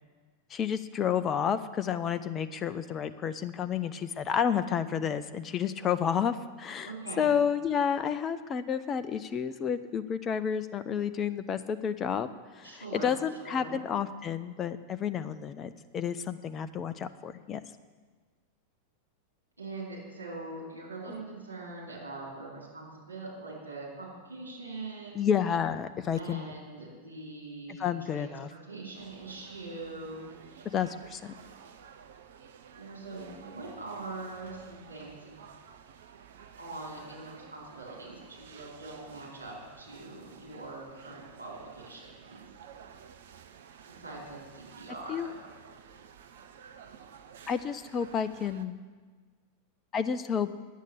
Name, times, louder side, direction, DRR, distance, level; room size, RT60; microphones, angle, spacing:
voice 1, 0.5-12.3 12.6-17.6 25.1-26.5 27.8-28.5 30.7-31.3 45.1-45.3 47.5-48.8 49.9-50.5, left 8 dB, 25° left, 11 dB, 0.4 m, -30 dB
voice 2, 6.8-7.3 12.6-13.1 13.4-13.8 19.6-25.3 26.1-30.7 32.7-35.3 36.6-42.4 43.9-45.3, right 2 dB, 80° right, -5 dB, 4.4 m, -43 dB
sound 1, 28.9-48.7, right 7 dB, 60° right, 0.7 m, -52 dB
10.0 x 8.2 x 8.2 m, 1.4 s
figure-of-eight pair, 90°, 0 cm